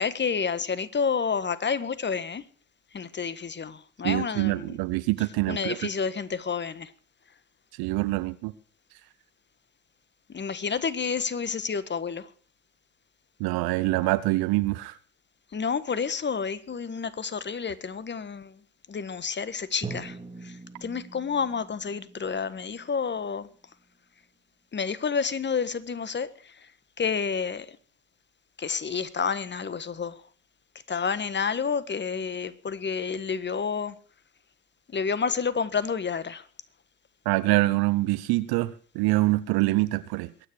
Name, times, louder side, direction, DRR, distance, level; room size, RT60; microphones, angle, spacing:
voice 1, 0.0-2.4 2.9-4.8 5.5-6.9 10.3-12.3 15.5-18.5 18.9-23.5 24.7-26.5 27.0-27.8 28.6-30.2 30.9-33.9 34.9-36.4, left 6 dB, 25° left, 1.4 m, -29 dB
voice 2, 4.0-5.8 7.8-8.5 13.4-15.0 37.2-40.3, right 20 dB, 60° right, 0.9 m, -25 dB
Drum, 19.8-23.8, right 3 dB, 10° right, 3.5 m, -42 dB
22.5 x 9.7 x 4.8 m
hypercardioid pair, 65°, 44 cm